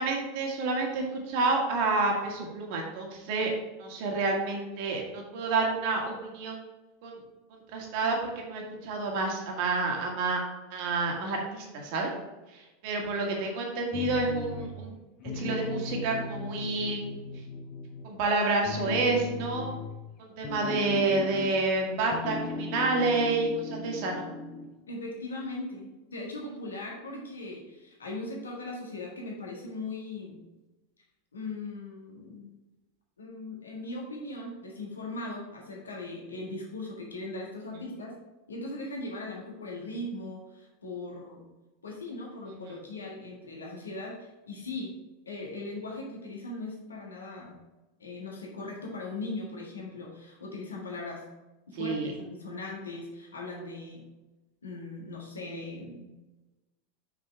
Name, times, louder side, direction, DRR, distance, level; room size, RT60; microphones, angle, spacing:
voice 1, 0.0-3.5 3.8-6.6 7.0-7.2 7.7-10.4 10.7-12.1 12.5-14.9 15.3-17.0 18.0-19.7 20.2-24.3 51.8-52.1, right 3 dB, 50° right, 1 dB, 1.6 m, -29 dB
sound 1, 13.9-14.9 15.2-18.2 18.6-21.8 22.0-24.8, left 4 dB, 40° left, 0.8 m, -38 dB
voice 2, 24.9-30.4 31.3-32.5 33.2-38.2 38.5-41.4 41.8-44.9 45.3-47.6 48.0-51.3 51.7-54.1 54.6-56.1, left 2 dB, 75° left, -2 dB, 1.6 m, -39 dB
6.3 x 6.1 x 3.4 m, 1.1 s
figure-of-eight pair, 85°, 0 cm